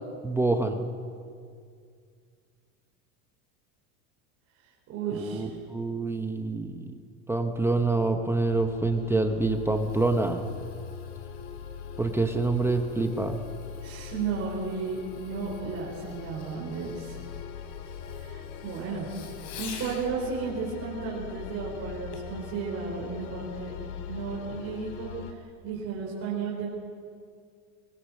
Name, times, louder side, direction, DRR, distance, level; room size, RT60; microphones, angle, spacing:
voice 1, 0.2-0.9 5.1-6.8 7.3-10.6 12.0-13.4, right 3 dB, 5° right, 5 dB, 0.8 m, -26 dB
voice 2, 4.9-5.6 13.8-17.2 18.1-19.3 19.6-23.7 24.1-26.7, right 5 dB, 30° right, -6 dB, 5.0 m, -34 dB
sound 1, 8.5-25.3, left 7 dB, 65° left, 2.4 m, -41 dB
Fireworks, 9.4-20.1 22.1-22.4 23.0-23.1, left 6 dB, 80° left, 4.5 m, -50 dB
23.5 x 23.0 x 6.4 m, 2.2 s
supercardioid pair, 155°, 45 cm